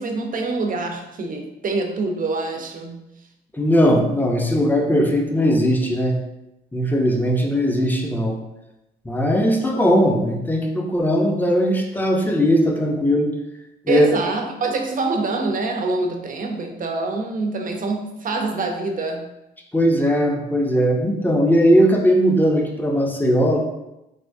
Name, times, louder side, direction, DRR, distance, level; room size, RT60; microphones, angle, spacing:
voice 1, 0.0-3.0 13.9-19.3, right 3 dB, 45° right, 3 dB, 0.6 m, -25 dB
voice 2, 3.5-6.2 6.7-8.4 9.0-13.3 13.9-14.1 19.7-23.6, equal, 10° left, 1 dB, 0.7 m, -19 dB
3.4 x 3.0 x 2.6 m, 0.91 s
cardioid pair, 75°, 18 cm